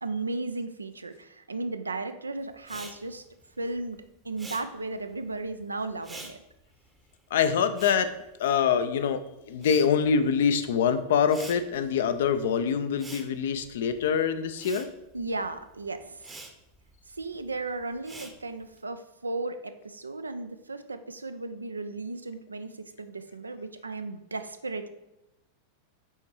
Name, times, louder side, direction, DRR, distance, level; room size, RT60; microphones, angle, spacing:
voice 1, 0.0-3.2 3.6-4.0 4.2-6.4 15.1-16.4 17.1-24.9, right 3 dB, 80° right, 10 dB, 0.4 m, -35 dB
Respiratory sounds, 2.6-9.1 9.3-18.8, right 2 dB, 10° right, 0.8 m, -48 dB
voice 2, 7.3-8.1 8.4-9.2 9.5-14.9, left 7 dB, 60° left, 10 dB, 0.5 m, -25 dB
5.5 x 4.4 x 4.7 m, 0.93 s
figure-of-eight pair, 90°, 0 cm